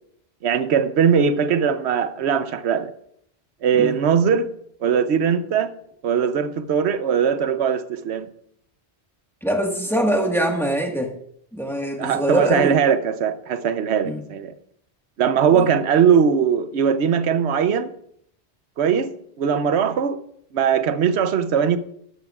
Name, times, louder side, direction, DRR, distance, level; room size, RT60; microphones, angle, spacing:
voice 1, 0.4-2.9 3.6-4.5 4.8-5.7 6.0-8.3 12.0-14.5 15.2-17.9 18.8-19.1 19.4-20.2 20.5-21.8, right 7 dB, 90° right, 12 dB, 1.0 m, -20 dB
voice 2, 9.4-11.1 11.5-12.8 14.0-14.2 15.5-15.7, equal, ahead, 2 dB, 1.4 m, -23 dB
12.5 x 12.0 x 2.4 m, 0.69 s
omnidirectional pair, 1.1 m